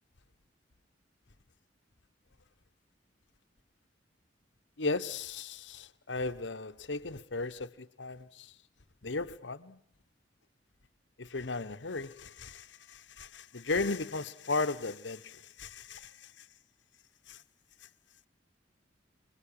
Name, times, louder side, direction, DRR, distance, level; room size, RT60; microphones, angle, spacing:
voice 1, 4.8-8.5 9.0-9.8 11.2-16.5 17.3-17.4, left 3 dB, 75° left, 1.2 m, -36 dB
27.5 x 21.5 x 8.7 m
head